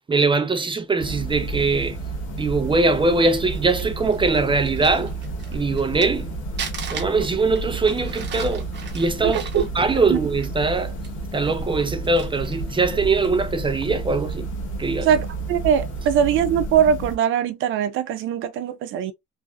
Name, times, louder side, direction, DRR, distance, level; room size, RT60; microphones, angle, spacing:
voice 1, 0.1-2.0 2.4-5.1 5.5-6.3 6.9-8.6 8.9-9.4 9.7-10.9 11.3-14.5 14.8-15.1, right 3 dB, 25° right, 0.6 m, -21 dB
sound 1, 1.0-17.2, right 3 dB, 80° left, 1.2 m, -31 dB
Crumpling crinkling, 3.3-6.2 6.6-10.7 11.0-11.1 11.7-12.6 13.2-13.4, right 7 dB, 60° right, 0.9 m, -37 dB
voice 2, 9.2-9.6 10.1-10.2 15.0-19.1, right 8 dB, 85° right, 0.5 m, -21 dB
3.2 x 2.6 x 2.2 m
cardioid pair, 90°, 20 cm